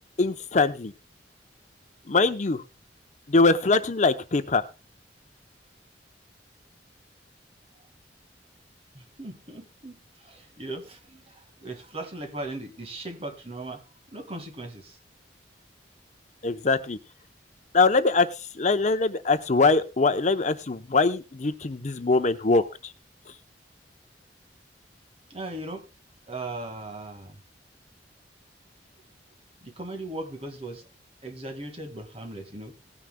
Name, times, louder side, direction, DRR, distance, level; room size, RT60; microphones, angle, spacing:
voice 1, 0.2-0.9 2.1-2.6 3.3-4.6 16.4-17.0 17.7-18.3 18.5-22.9, left 3 dB, 40° left, 9 dB, 0.7 m, -22 dB
voice 2, 8.9-13.8 14.1-15.0 25.3-25.8 26.3-27.4 29.6-30.8 31.2-32.7, right 2 dB, 35° right, 7 dB, 1.8 m, -38 dB
18.5 x 9.8 x 2.2 m, 0.29 s
head